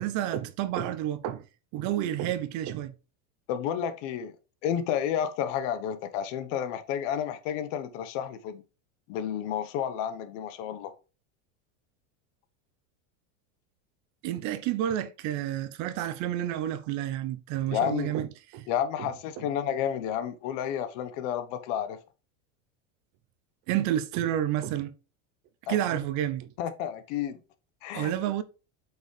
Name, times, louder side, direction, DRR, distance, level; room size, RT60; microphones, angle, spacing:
voice 1, 0.0-1.5 1.7-2.9 14.2-18.3 18.5-18.7 19.0-19.1 19.4-19.5 23.7-24.9 25.7-26.5 27.9-28.4, right 12 dB, 45° right, 0.7 m, -30 dB
voice 2, 3.5-4.3 4.6-8.6 9.1-10.9 17.7-18.1 18.7-22.0 25.7-25.8 26.6-27.4 27.8-28.1, left 9 dB, 60° left, 1.2 m, -31 dB
8.1 x 4.8 x 3.3 m
supercardioid pair, 135°, 40 cm